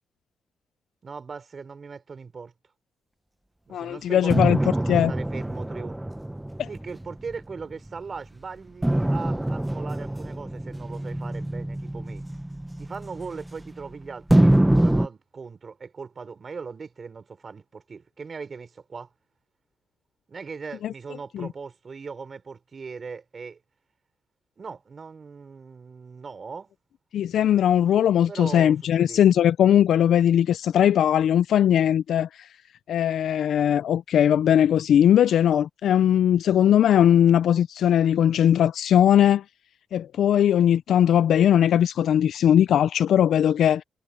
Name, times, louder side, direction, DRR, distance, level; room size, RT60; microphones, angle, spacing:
voice 1, 1.0-2.5 3.7-6.0 6.7-12.3 12.8-19.1 20.3-23.6 24.6-26.7 28.3-29.3, right 5 dB, 45° right, 5.0 m, -39 dB
voice 2, 3.7-4.6 4.9-5.1 6.6-6.7 20.8-20.9 21.3-21.5 27.1-32.5 32.9-39.4 39.9-43.8, left 10 dB, 75° left, 0.4 m, -19 dB
sound 1, 4.3-8.0 8.8-13.8 14.3-15.1, right 1 dB, 10° right, 0.8 m, -24 dB
cardioid pair, 80°, 0 cm